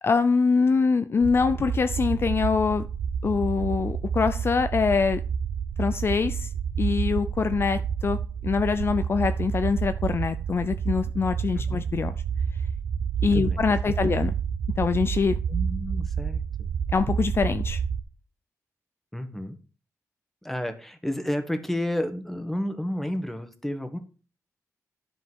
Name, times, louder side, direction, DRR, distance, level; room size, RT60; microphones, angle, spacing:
voice 1, 0.0-2.9 3.2-5.2 5.8-6.5 6.8-12.1 13.2-14.3 14.8-15.4 16.9-17.8, left 5 dB, 45° left, 0.5 m, -24 dB
sound 1, 1.2-18.0, right 7 dB, 75° right, 0.6 m, -29 dB
voice 2, 15.5-16.7 19.1-19.6 20.4-24.0, left 1 dB, 5° left, 1.5 m, -31 dB
10.5 x 5.3 x 6.2 m
wide cardioid pair, 115°, 6 cm